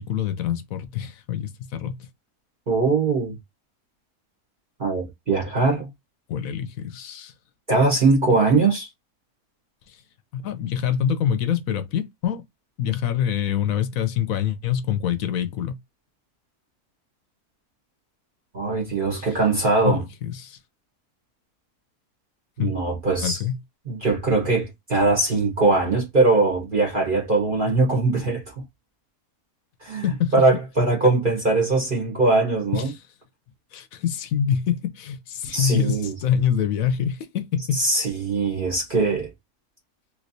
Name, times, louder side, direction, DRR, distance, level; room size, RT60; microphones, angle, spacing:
voice 1, 0.0-2.0 6.3-7.3 9.9-10.0 10.3-12.4 12.8-15.8 19.2-19.4 19.8-20.6 22.6-22.8 23.2-23.6 30.0-30.3 32.7-33.0 33.7-37.8, left 8 dB, 70° left, 0.9 m, -25 dB
voice 2, 2.7-3.4 4.8-5.9 7.7-8.9 18.5-20.0 22.6-23.4 23.9-28.6 29.8-30.1 30.3-32.9 35.5-36.1 37.7-39.3, right 3 dB, 35° right, 1.2 m, -21 dB
3.2 x 3.1 x 2.6 m
omnidirectional pair, 1.7 m